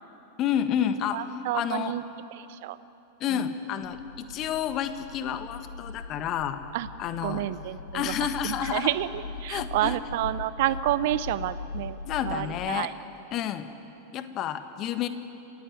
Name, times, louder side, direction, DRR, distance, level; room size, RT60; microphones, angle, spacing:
voice 1, 0.4-1.2 1.5-1.9 3.2-6.6 7.0-7.4 7.9-8.9 9.5-9.9 12.1-12.9 13.3-13.7 14.1-15.1, left 9 dB, 35° left, 9 dB, 1.6 m, -30 dB
voice 2, 1.1-2.0 2.3-2.8 3.3-3.5 6.7-6.9 7.2-8.1 8.4-12.0 12.2-12.9, right 14 dB, 50° right, 15 dB, 0.8 m, -29 dB
sound 1, 3.8-12.7, left 4 dB, 75° left, 0.8 m, -40 dB
28.0 x 16.0 x 9.4 m, 2.9 s
figure-of-eight pair, 90°, 0 cm